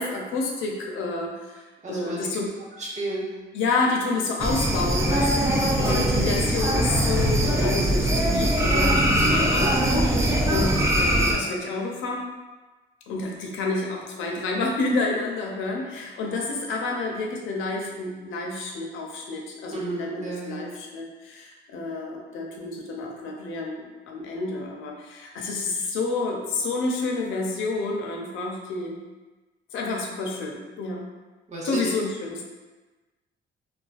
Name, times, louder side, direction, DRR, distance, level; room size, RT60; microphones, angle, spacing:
voice 1, 0.0-2.5 3.5-12.2 13.1-29.0 29.7-31.1 31.6-32.4, left 3 dB, 80° left, 0 dB, 0.5 m, -29 dB
voice 2, 1.8-2.3 2.8-3.3 5.8-6.4 19.7-20.7 31.5-31.9, right 2 dB, 35° right, -5 dB, 0.8 m, -33 dB
sound 1, 4.4-11.3, right 1 dB, 15° right, 0.3 m, -22 dB
2.4 x 2.2 x 2.4 m, 1.2 s
cardioid pair, 90°, 20 cm